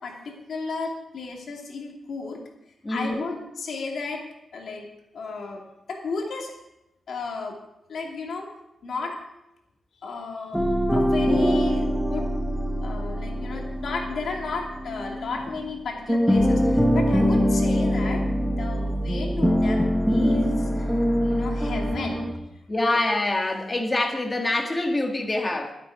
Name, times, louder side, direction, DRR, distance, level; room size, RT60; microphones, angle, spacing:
voice 1, 0.0-2.4 2.9-4.2 4.5-4.9 5.1-5.6 5.9-6.6 7.1-7.6 7.9-8.5 8.8-9.2 10.0-10.6 10.9-12.3 12.8-22.2, left 4 dB, 65° left, 0 dB, 2.6 m, -33 dB
voice 2, 2.8-3.3 22.7-25.7, left 2 dB, 20° left, 3 dB, 1.6 m, -25 dB
sound 1, 10.5-15.8 16.1-22.4, equal, 5° right, 1.0 m, -23 dB
12.0 x 10.5 x 4.9 m, 0.88 s
wide cardioid pair, 145°, 0 cm